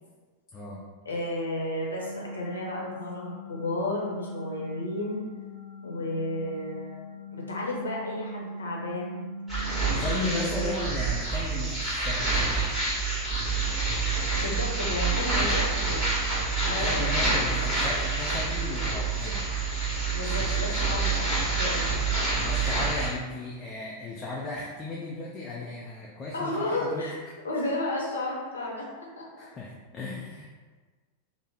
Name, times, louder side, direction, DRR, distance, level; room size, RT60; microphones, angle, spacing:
voice 1, 0.5-0.9 9.9-12.8 16.6-19.5 22.3-27.1 29.4-30.5, left 2 dB, 25° left, -4 dB, 0.4 m, -36 dB
voice 2, 1.0-5.2 5.8-7.0 7.3-9.2 10.1-10.8 14.3-16.2 16.6-17.7 20.1-22.0 26.3-27.2 27.4-28.9 29.2-29.5, left 1 dB, 70° left, -3 dB, 0.7 m, -33 dB
sound 1, 1.9-10.8, left 1 dB, 90° right, 0.4 m, -40 dB
sound 2, 9.5-23.1, right 3 dB, 10° right, 1.3 m, -27 dB
3.2 x 2.0 x 3.5 m, 1.4 s
figure-of-eight pair, 90°, 0 cm